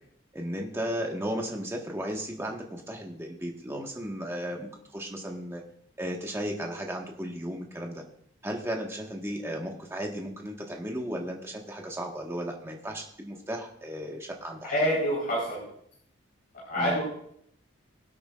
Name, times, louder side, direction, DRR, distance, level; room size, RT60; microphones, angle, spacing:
voice 1, 0.3-5.6 6.0-8.0 8.4-14.7 16.8-17.0, equal, 10° right, 0 dB, 1.6 m, -35 dB
voice 2, 14.7-15.6 16.7-17.0, equal, 45° left, -6 dB, 4.5 m, -26 dB
22.5 x 8.5 x 2.5 m, 0.70 s
head